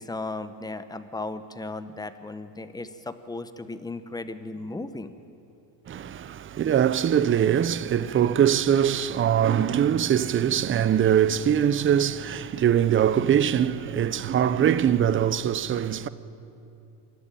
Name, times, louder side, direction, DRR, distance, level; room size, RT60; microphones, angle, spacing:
voice 1, 0.0-5.1, left 2 dB, 10° left, 0.9 m, -36 dB
voice 2, 5.9-16.1, right 9 dB, 25° right, 0.6 m, -22 dB
25.5 x 11.5 x 9.0 m
supercardioid pair, 110°, 47 cm